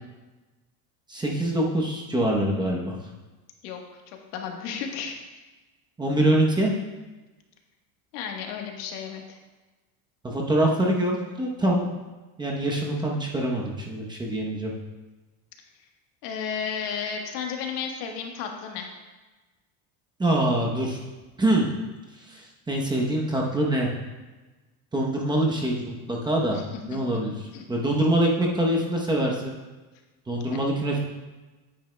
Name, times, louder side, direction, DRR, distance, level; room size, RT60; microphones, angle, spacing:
voice 1, 1.1-2.9 6.0-6.7 10.2-11.8 12.4-14.7 20.2-21.0 21.4-21.7 22.2-23.9 24.9-26.6 26.9-27.4 27.7-29.5 30.3-31.0, right 1 dB, 10° right, -2 dB, 0.8 m, -24 dB
voice 2, 4.1-5.2 8.1-9.4 16.2-18.9 26.5-27.0 27.5-27.6, left 7 dB, 90° left, 2 dB, 1.4 m, -33 dB
9.0 x 8.9 x 2.2 m, 1.2 s
cardioid pair, 155°, 46 cm